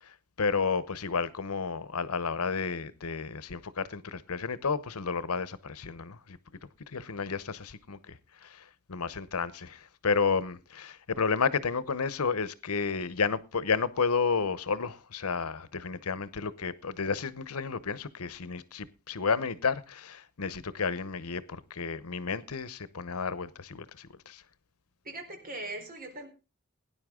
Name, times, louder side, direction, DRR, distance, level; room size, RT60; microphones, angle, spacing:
voice 1, 0.0-6.4 6.9-24.4, left 5 dB, 90° left, 0.9 m, -32 dB
voice 2, 25.0-26.3, right 2 dB, 40° right, 4.0 m, -40 dB
18.0 x 10.0 x 3.7 m
head